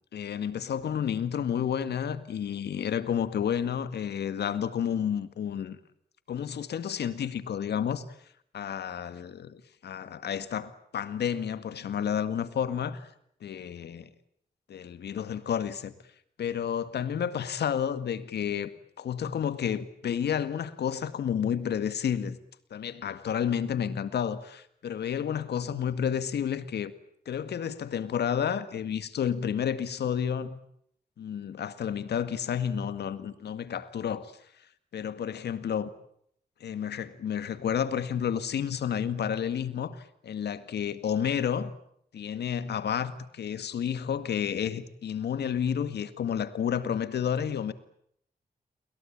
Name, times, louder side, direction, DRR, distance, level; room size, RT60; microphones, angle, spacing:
voice 1, 0.1-5.8 6.3-8.0 8.5-13.0 13.4-14.1 14.7-15.9 16.4-18.7 19.0-22.4 22.7-26.9 27.3-30.6 31.2-34.3 34.9-35.9 36.6-41.7 42.1-47.7, left 8 dB, 90° left, 1.9 m, -31 dB
29.5 x 22.5 x 8.8 m
cardioid pair, 55°, 17 cm